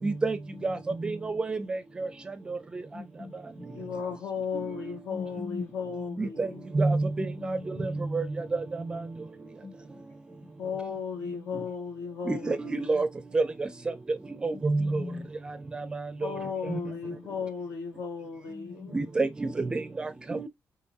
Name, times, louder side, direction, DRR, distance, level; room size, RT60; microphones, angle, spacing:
voice 1, 0.0-0.4 0.6-0.7 1.5-1.6 6.2-6.5 6.8-7.0 8.1-8.2 12.3-12.6 12.9-13.1 13.3-13.4 14.6-14.8 18.9-19.5 20.3-20.5, right 3 dB, 15° right, 0.4 m, -25 dB
voice 2, 0.5-1.1 2.9-3.7 5.1-5.6 5.9-6.2 7.2-8.0 9.6-9.7 10.9-11.5 14.5-15.3 16.6-16.9 18.5-18.9, left 4 dB, 35° left, 2.1 m, -42 dB
voice 3, 3.7-6.6 10.6-13.0 16.2-19.0, left 6 dB, 85° left, 1.8 m, -35 dB
6.2 x 3.0 x 2.8 m
wide cardioid pair, 180°, 5 cm